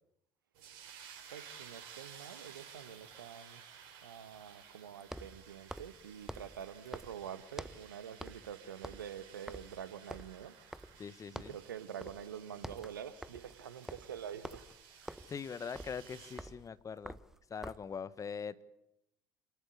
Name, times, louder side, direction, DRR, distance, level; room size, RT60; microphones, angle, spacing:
sound 1, 0.5-16.5, right 8 dB, 60° right, 6.3 m, -56 dB
voice 1, 1.3-3.6 4.0-10.6 11.3-14.7, right 9 dB, 75° right, 1.4 m, -46 dB
sound 2, 4.6-12.8, right 1 dB, 80° left, 6.1 m, -76 dB
sound 3, 5.0-7.9 8.2-8.5 8.8-11.1 11.4-11.7 12.0-12.3 12.5-18.0, right 1 dB, 5° right, 1.1 m, -48 dB
voice 2, 11.0-11.5 15.3-17.2 17.5-18.6, left 6 dB, 30° left, 1.3 m, -42 dB
28.0 x 20.0 x 8.5 m
figure-of-eight pair, 60°, 11 cm